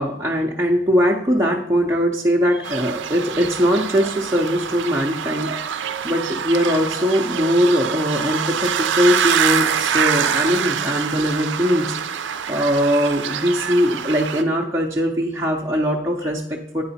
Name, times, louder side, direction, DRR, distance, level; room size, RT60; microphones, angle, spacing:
voice 1, 0.0-11.9 12.2-16.8, equal, 15° right, -3 dB, 0.6 m, -21 dB
sound 1, 2.6-14.4, right 8 dB, 70° right, 0.5 m, -25 dB
8.8 x 4.8 x 4.1 m, 0.71 s
head